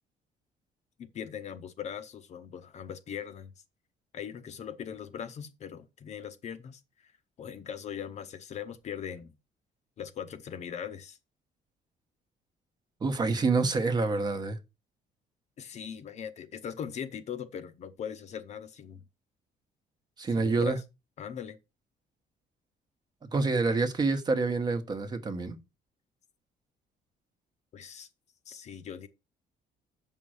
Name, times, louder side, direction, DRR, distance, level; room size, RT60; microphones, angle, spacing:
voice 1, 1.0-3.5 4.1-7.1 7.4-9.3 10.0-11.2 15.6-19.0 20.3-20.8 21.2-21.6 27.7-28.1 28.5-29.1, left 8 dB, 40° left, 0.9 m, -40 dB
voice 2, 13.0-14.6 20.2-20.8 23.2-25.6, right 3 dB, 25° right, 1.1 m, -27 dB
7.5 x 5.5 x 6.3 m
cardioid pair, 175°, 17 cm